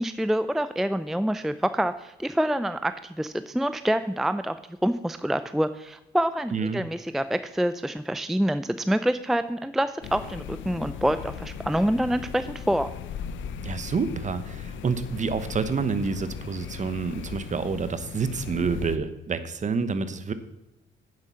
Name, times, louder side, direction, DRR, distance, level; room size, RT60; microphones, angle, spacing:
voice 1, 0.0-12.9, equal, ahead, 11 dB, 0.4 m, -26 dB
voice 2, 6.5-6.8 13.6-20.3, right 5 dB, 40° right, 11 dB, 1.0 m, -28 dB
sound 1, 10.0-19.0, left 8 dB, 75° left, 0.8 m, -38 dB
9.0 x 7.6 x 5.7 m, 0.92 s
cardioid pair, 90°, 20 cm